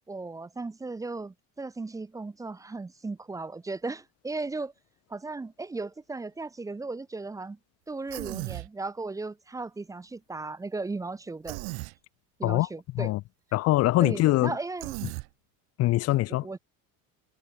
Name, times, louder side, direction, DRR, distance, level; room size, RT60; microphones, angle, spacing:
voice 1, 0.1-4.7 5.1-7.6 7.9-11.6 12.4-13.1 14.0-15.1 16.4-16.6, right 3 dB, 10° right, 0.7 m, -36 dB
Human voice, 8.1-8.7 11.5-11.9 14.8-15.3, right 32 dB, 75° right, 1.5 m, -36 dB
voice 2, 13.5-14.5 15.8-16.5, left 17 dB, 40° left, 0.6 m, -23 dB
cardioid pair, 160°, 38 cm